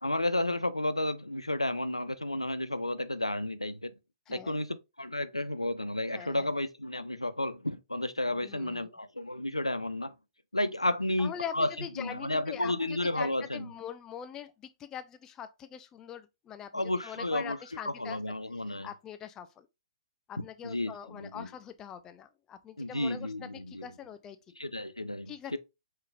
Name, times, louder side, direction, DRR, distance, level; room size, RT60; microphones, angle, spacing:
voice 1, 0.0-3.9 4.3-10.1 10.5-11.7 12.0-13.7 16.7-17.6 17.8-18.9 20.6-21.5 22.8-23.9 24.6-25.6, left 1 dB, 90° left, 0.4 m, -32 dB
voice 2, 4.3-4.6 6.1-6.5 8.3-8.9 11.2-18.2 18.7-19.7 20.3-24.4 25.3-25.6, left 9 dB, 20° left, 0.5 m, -43 dB
5.1 x 3.7 x 2.4 m
figure-of-eight pair, 120°, 3 cm